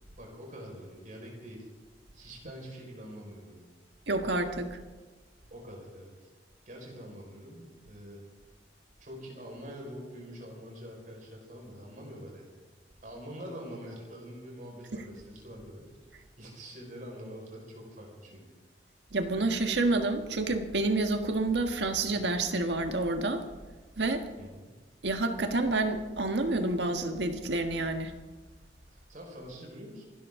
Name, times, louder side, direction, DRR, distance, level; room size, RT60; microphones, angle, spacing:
voice 1, 0.2-1.7 2.1-3.7 5.5-6.1 6.6-8.2 9.0-12.5 13.0-18.4 24.4-24.7 28.9-30.1, equal, 50° right, -1 dB, 5.1 m, -45 dB
voice 2, 4.1-4.8 19.1-23.4 24.0-24.2 25.0-28.1, right 2 dB, 80° right, 6 dB, 1.5 m, -28 dB
26.5 x 12.5 x 3.8 m, 1.3 s
head